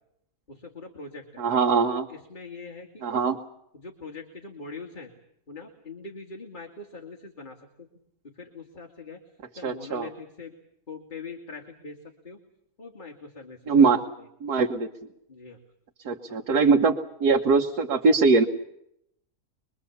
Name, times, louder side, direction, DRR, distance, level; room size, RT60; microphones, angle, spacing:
voice 1, 0.5-1.4 2.1-3.2 3.7-5.1 5.5-7.6 8.4-9.2 9.6-10.5 10.9-12.0 12.2-12.4 12.8-14.0 15.3-15.6 16.3-16.4, left 4 dB, 30° left, 2 dB, 2.2 m, -42 dB
voice 2, 1.4-2.1 3.0-3.4 9.6-10.1 13.7-14.0 14.4-14.9 16.0-16.9 17.2-18.4, right 4 dB, 80° right, 3 dB, 1.7 m, -21 dB
24.5 x 23.0 x 7.1 m, 0.78 s
omnidirectional pair, 1.6 m